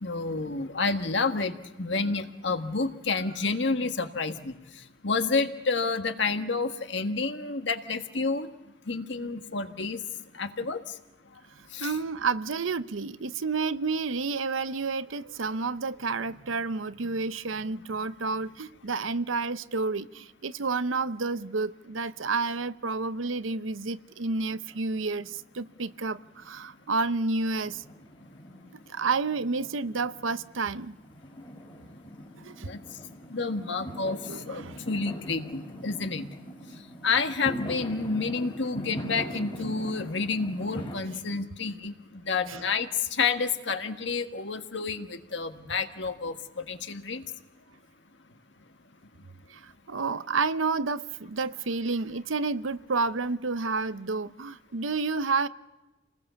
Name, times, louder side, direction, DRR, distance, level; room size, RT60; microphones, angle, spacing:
voice 1, 0.0-4.5 5.0-8.5 8.9-10.0 10.4-10.8 11.7-12.0 32.7-32.8 33.3-34.2 34.5-36.2 37.0-47.2, left 4 dB, 65° left, 1.7 m, -29 dB
voice 2, 11.8-27.8 28.9-31.0 32.4-32.7 34.3-34.8 41.1-41.2 42.5-42.7 49.5-49.6 49.9-55.5, right 4 dB, 85° right, 0.8 m, -30 dB
Fireworks, 24.5-25.4 25.7-41.0, equal, 25° left, 2.9 m, -41 dB
29.0 x 20.0 x 7.1 m
head